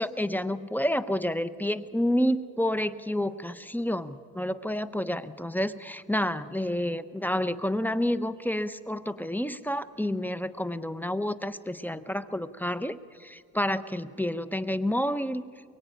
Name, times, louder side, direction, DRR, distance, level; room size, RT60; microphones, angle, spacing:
voice 1, 0.0-15.4, left 1 dB, 5° left, 13 dB, 1.0 m, -29 dB
23.0 x 23.0 x 9.2 m, 2.1 s
cardioid pair, 90°, 30 cm